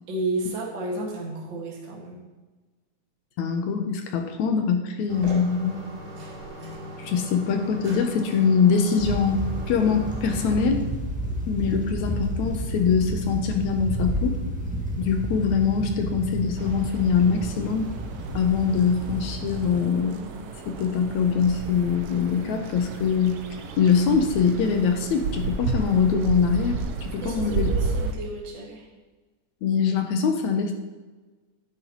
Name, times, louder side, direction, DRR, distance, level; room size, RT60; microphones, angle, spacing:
voice 1, 0.1-2.3 27.2-28.9, right 2 dB, 40° right, -4 dB, 2.2 m, -32 dB
voice 2, 3.4-5.9 7.0-9.4 9.7-10.9 11.5-14.3 15.0-17.9 18.3-23.4 23.8-27.7 29.6-30.7, left 6 dB, 75° left, 5 dB, 2.0 m, -23 dB
sound 1, 5.1-10.6, right 1 dB, 90° right, 3.8 m, -39 dB
sound 2, 9.0-19.8, right 1 dB, 5° right, 0.6 m, -31 dB
sound 3, 16.6-28.1, right 4 dB, 70° right, 1.5 m, -32 dB
12.0 x 10.0 x 3.0 m, 1.3 s
omnidirectional pair, 3.6 m